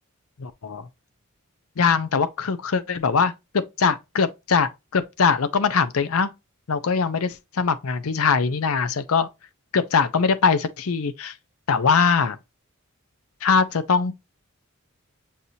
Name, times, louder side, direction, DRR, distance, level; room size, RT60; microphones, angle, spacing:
voice 1, 0.4-0.9 1.8-6.3 6.7-9.3 9.7-11.3 11.7-12.4 13.4-14.2, left 5 dB, 70° left, 0.6 m, -22 dB
6.5 x 2.8 x 2.7 m
head